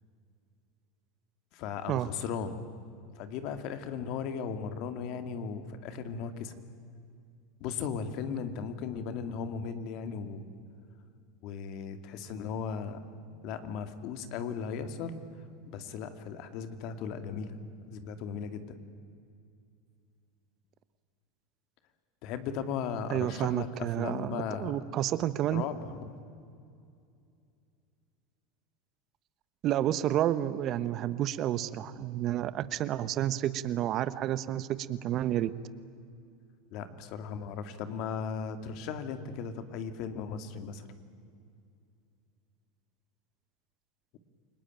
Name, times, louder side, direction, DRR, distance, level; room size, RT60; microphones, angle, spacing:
voice 1, 1.5-2.6 3.2-6.6 7.6-10.4 11.4-13.0 13.4-15.2 15.7-17.6 17.9-18.8 22.2-24.7 25.5-26.2 36.7-40.9, left 6 dB, 60° left, 9 dB, 2.3 m, -37 dB
voice 2, 23.1-25.6 29.6-35.5, right 12 dB, 45° right, 15 dB, 1.1 m, -30 dB
29.0 x 19.5 x 9.2 m, 2.4 s
supercardioid pair, 110°, 0 cm